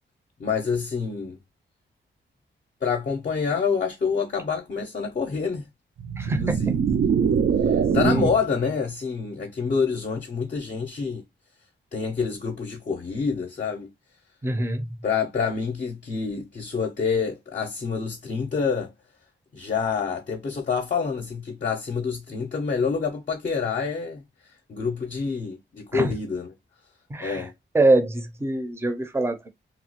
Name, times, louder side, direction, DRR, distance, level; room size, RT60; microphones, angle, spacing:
voice 1, 0.4-1.4 2.8-5.6 6.3-6.8 7.7-11.2 11.9-13.9 15.0-18.9 19.5-24.2 24.7-26.5 27.2-27.5, left 5 dB, 45° left, 0.6 m, -27 dB
sound 1, 6.0-8.5, right 7 dB, 60° right, 0.4 m, -23 dB
voice 2, 6.2-6.6 8.0-8.3 14.4-14.8 25.9-26.1 27.1-27.4 27.7-29.5, right 2 dB, 10° right, 0.5 m, -23 dB
2.9 x 2.2 x 2.9 m
wide cardioid pair, 125°, 20 cm